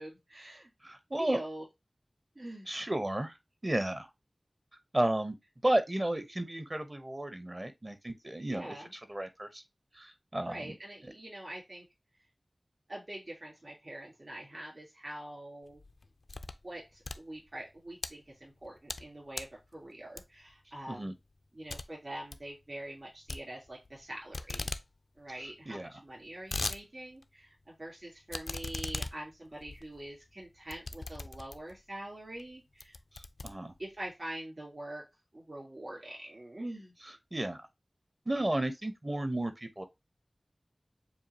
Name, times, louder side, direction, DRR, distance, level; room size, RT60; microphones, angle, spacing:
voice 1, 0.0-0.7 1.2-1.6 2.3-2.7 8.5-8.9 10.4-11.9 12.9-15.8 16.6-21.1 21.5-24.7 25.2-33.0 33.8-35.0 35.3-37.0, right 1 dB, 55° right, 3.4 m, -44 dB
voice 2, 0.8-1.4 2.7-3.3 3.6-4.1 4.9-5.3 5.6-9.6 9.9-10.7 11.0-11.1 20.9-21.1 25.7-25.9 33.1-33.7 37.3-37.7 38.3-39.9, right 1 dB, 35° right, 0.8 m, -33 dB
sound 1, 15.7-16.7 17.0-18.1 18.6-19.1 19.3-19.6 20.2-20.5 20.9-21.0 21.3-21.4 21.7-21.9 22.1-22.5 23.3-24.0 24.3-24.9 25.2-25.3 25.4-25.5 26.1-26.8 27.2-27.3 28.3-31.8 32.4-32.5 32.8-34.1, left 3 dB, 80° left, 0.4 m, -39 dB
7.0 x 2.5 x 2.7 m
wide cardioid pair, 55°, 0 cm